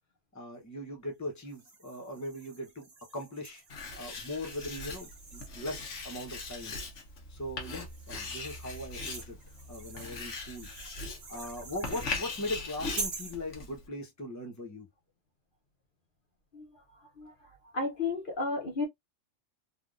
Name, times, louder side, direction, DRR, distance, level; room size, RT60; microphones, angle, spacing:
voice 1, 0.3-3.6 4.0-6.7 7.3-9.4 9.7-10.7 11.3-14.9, left 1 dB, 15° left, 0.9 m, -39 dB
sound 1, 1.5-7.0 7.6-12.1 13.0-13.4, right 4 dB, 60° right, 1.1 m, -46 dB
Writing, 3.7-13.9, left 3 dB, 80° left, 1.3 m, -40 dB
voice 2, 17.2-18.9, left 3 dB, 50° left, 1.0 m, -34 dB
3.4 x 2.3 x 2.5 m
omnidirectional pair, 1.2 m